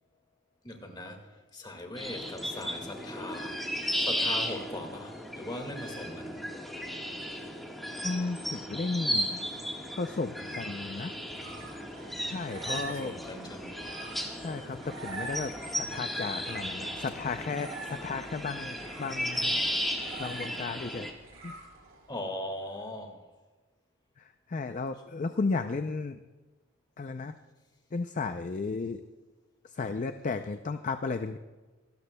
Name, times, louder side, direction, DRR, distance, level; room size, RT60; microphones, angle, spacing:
voice 1, 0.6-1.3 1.5-3.6 4.0-6.4 12.6-13.8 22.1-23.2, left 1 dB, 20° left, 4 dB, 1.8 m, -40 dB
sound 1, 2.0-21.1, equal, ahead, 1.4 m, -35 dB
voice 2, 8.0-9.4 10.0-11.1 12.2-13.1 14.4-19.7 20.2-21.2 21.4-21.5 24.2-26.2 27.0-27.4 27.9-29.0 29.6-31.4, left 4 dB, 35° left, 9 dB, 0.4 m, -34 dB
sound 2, 10.9-22.1, right 3 dB, 90° right, 3.6 m, -46 dB
26.0 x 13.0 x 2.2 m, 1.2 s
head